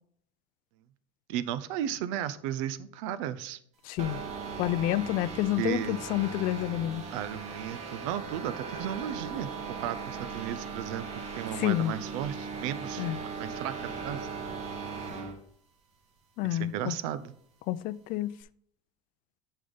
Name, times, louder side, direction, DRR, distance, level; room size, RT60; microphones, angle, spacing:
voice 1, 1.3-3.6 5.6-6.1 7.1-11.1 11.4-13.1 13.4-14.3 16.5-17.3, right 10 dB, 75° right, 0.6 m, -34 dB
voice 2, 3.8-4.2 4.6-7.0 11.6-11.9 13.0-13.2 16.4-17.0 17.7-18.3, left 14 dB, 55° left, 0.4 m, -29 dB
sound 1, 4.0-15.4, right 5 dB, 40° right, 1.6 m, -38 dB
8.5 x 5.4 x 3.9 m
supercardioid pair, 110°, 17 cm